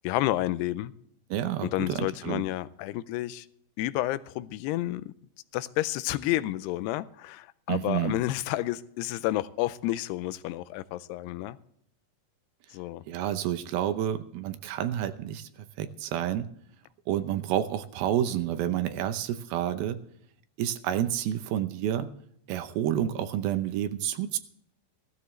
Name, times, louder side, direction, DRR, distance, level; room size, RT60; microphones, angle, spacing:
voice 1, 0.0-0.9 1.6-3.5 3.8-5.1 5.5-11.6 12.7-13.0, left 16 dB, 90° left, 16 dB, 2.7 m, -30 dB
voice 2, 1.3-2.4 7.7-8.2 13.1-15.5 15.8-16.5 17.1-20.0 20.6-22.1 22.5-24.4, right 11 dB, 75° right, 10 dB, 2.5 m, -29 dB
15.5 x 14.0 x 3.2 m, 0.69 s
omnidirectional pair, 4.6 m